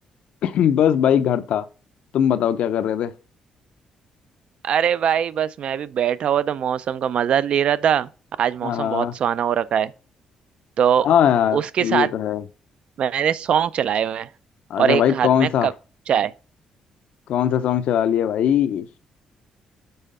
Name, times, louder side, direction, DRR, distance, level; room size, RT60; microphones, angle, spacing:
voice 1, 0.4-1.7 2.1-3.1 8.6-9.1 11.0-12.4 14.7-15.7 17.3-18.9, left 9 dB, 75° left, 0.5 m, -20 dB
voice 2, 4.6-8.1 8.4-9.9 10.8-11.1 11.5-12.1 13.0-14.3 14.8-15.7 16.1-16.3, right 9 dB, 60° right, 0.4 m, -21 dB
5.5 x 3.6 x 5.3 m
cardioid pair, 90°, 2 cm